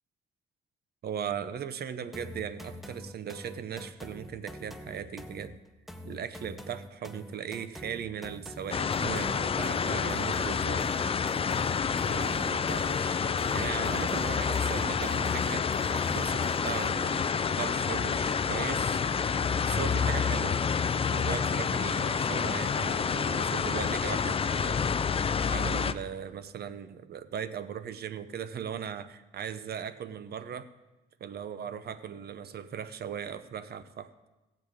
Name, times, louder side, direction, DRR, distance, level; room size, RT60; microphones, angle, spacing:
voice 1, 1.0-5.6 6.0-11.7 12.0-19.0 19.6-20.6 21.1-24.8 25.5-30.7 31.2-34.1, right 8 dB, 55° right, 13 dB, 0.7 m, -38 dB
sound 1, 2.1-17.1, equal, ahead, 0.8 m, -45 dB
sound 2, 8.7-25.9, left 6 dB, 30° left, 0.4 m, -28 dB
17.5 x 8.0 x 3.6 m, 1.0 s
cardioid pair, 90°, 20 cm